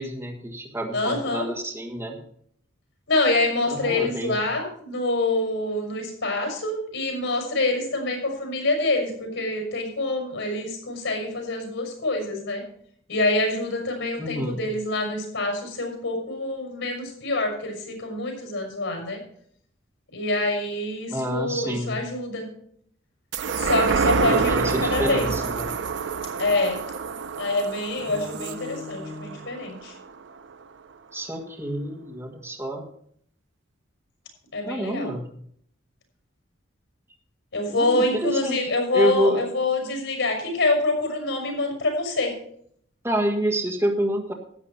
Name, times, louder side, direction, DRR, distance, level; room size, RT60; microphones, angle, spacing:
voice 1, 0.0-2.2 3.7-4.4 14.2-14.6 21.1-21.9 24.3-25.7 28.0-29.5 31.1-32.8 34.6-35.3 37.7-39.4 43.0-44.3, right 1 dB, 15° right, 0 dB, 1.6 m, -28 dB
voice 2, 0.9-1.5 3.1-12.6 13.1-19.2 20.1-22.5 23.6-25.3 26.4-26.8 27.4-29.9 34.5-35.1 37.5-42.3, left 2 dB, 80° left, 3 dB, 6.1 m, -26 dB
sound 1, 23.3-30.1 30.5-30.6, right 5 dB, 65° right, 0.5 m, -27 dB
13.0 x 8.9 x 5.8 m, 0.65 s
head